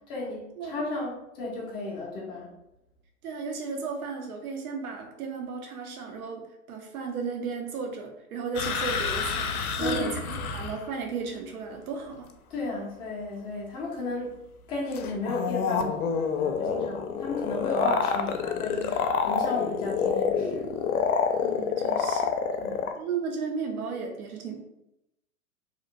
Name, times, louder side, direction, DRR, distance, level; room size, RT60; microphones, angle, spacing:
voice 1, 0.1-2.5 9.8-10.1 12.5-14.3 14.7-20.7 22.6-22.8, left 3 dB, 15° left, -5 dB, 0.4 m, -33 dB
voice 2, 3.2-12.3 21.4-22.3 22.9-24.6, right 5 dB, 80° right, 2 dB, 0.6 m, -34 dB
sound 1, 8.5-10.9 14.9-22.9, left 6 dB, 80° left, 0.5 m, -28 dB
2.8 x 2.0 x 2.5 m, 0.85 s
hypercardioid pair, 115°, 44 cm